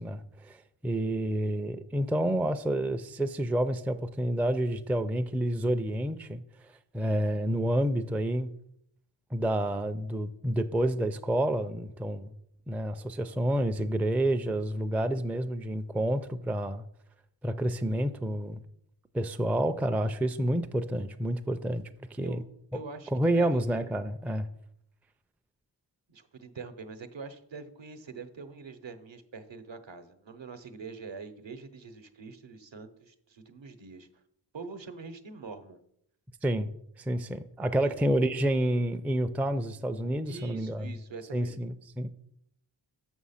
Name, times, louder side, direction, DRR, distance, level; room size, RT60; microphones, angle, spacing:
voice 1, 0.0-6.4 6.9-8.5 9.3-12.3 12.7-16.8 17.4-18.6 19.1-22.4 22.7-22.8 23.1-24.5 36.4-36.7 37.0-40.9 41.3-42.1, right 1 dB, 5° right, 0.3 m, -29 dB
voice 2, 22.7-23.6 26.1-34.1 34.5-35.8 37.8-37.9 40.2-41.5, right 4 dB, 65° right, 0.9 m, -44 dB
6.4 x 6.2 x 5.6 m
wide cardioid pair, 60°, 47 cm